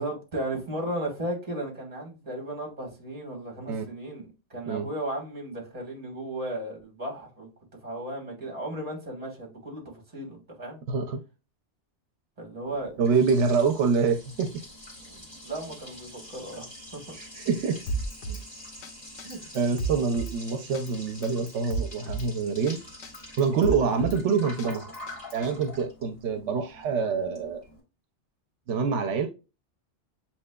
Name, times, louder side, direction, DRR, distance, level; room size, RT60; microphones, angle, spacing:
voice 1, 0.0-7.5 7.8-10.8 12.4-12.9 15.1-16.7 16.9-17.0 18.3-18.4 19.2-19.4, right 1 dB, 35° right, 1.6 m, -35 dB
voice 2, 10.9-11.2 13.0-14.5 17.1-17.8 19.5-22.8 23.4-24.9 25.3-27.6 28.7-29.3, right 5 dB, 80° right, 0.9 m, -26 dB
Liquid, 12.6-27.8, left 1 dB, 20° left, 1.6 m, -46 dB
Drum kit, 17.9-18.4 18.8-18.9 19.2-20.4 20.7-20.9 21.2-22.3 22.7-22.8 23.0-24.2 24.6-25.5, right 3 dB, 85° left, 0.9 m, -33 dB
7.4 x 2.9 x 2.2 m
omnidirectional pair, 1.2 m